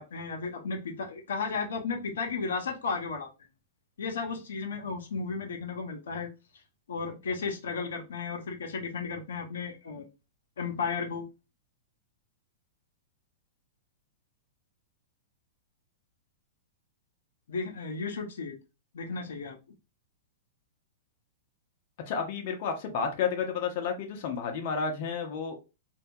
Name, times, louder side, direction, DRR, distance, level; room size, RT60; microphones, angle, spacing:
voice 1, 0.0-3.3 4.0-6.3 6.9-10.1 10.6-11.2 17.5-18.6 18.9-19.6, left 4 dB, 90° left, 2 dB, 0.7 m, -34 dB
voice 2, 22.1-25.5, left 6 dB, 50° left, 3 dB, 0.7 m, -31 dB
2.7 x 2.2 x 2.6 m, 0.28 s
hypercardioid pair, 135°, 0 cm